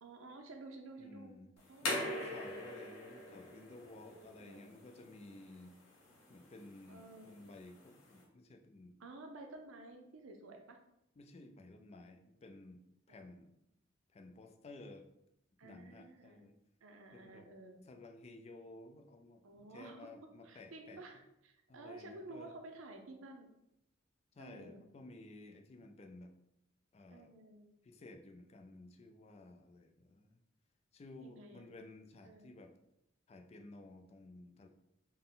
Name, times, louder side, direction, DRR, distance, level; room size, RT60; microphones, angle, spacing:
voice 1, 0.0-1.4 1.7-2.3 4.1-4.7 5.7-5.8 6.9-7.6 9.0-10.8 13.1-13.2 15.6-16.4 16.8-17.8 19.4-20.0 20.4-23.5 24.4-24.8 27.1-27.7 31.2-31.7 32.2-32.5, right 2 dB, 85° right, 4 dB, 0.6 m, -52 dB
voice 2, 1.0-1.5 1.8-5.7 6.3-9.0 11.2-12.8 13.1-13.5 14.1-15.1 15.6-16.6 17.1-17.5 17.8-21.0 21.7-22.5 24.3-26.3 26.9-27.3 27.8-30.4 30.9-32.7 33.3-34.7, left 2 dB, 30° left, 6 dB, 0.3 m, -54 dB
sound 1, 1.6-8.2, left 1 dB, 80° left, 1.0 m, -44 dB
3.8 x 2.1 x 3.8 m, 0.82 s
head